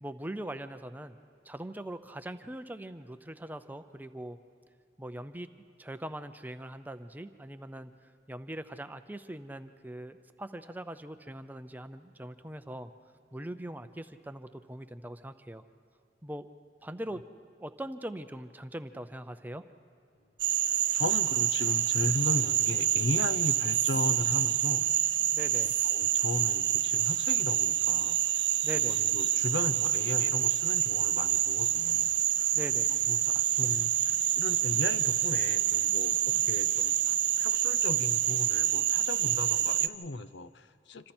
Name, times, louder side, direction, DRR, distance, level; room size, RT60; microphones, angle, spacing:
voice 1, 0.0-1.2 1.4-4.4 5.0-5.5 5.8-12.9 13.3-15.6 16.2-16.5 16.8-17.2 17.6-19.6 25.3-25.7 28.6-29.0 32.5-32.9, right 1 dB, 10° right, 10 dB, 0.5 m, -41 dB
Frog, 20.4-39.9, right 11 dB, 75° right, 0.7 m, -27 dB
voice 2, 20.9-24.9 25.6-28.2 28.9-32.5 32.9-41.1, left 2 dB, 70° left, 13 dB, 0.7 m, -36 dB
27.0 x 26.0 x 4.4 m, 2.5 s
head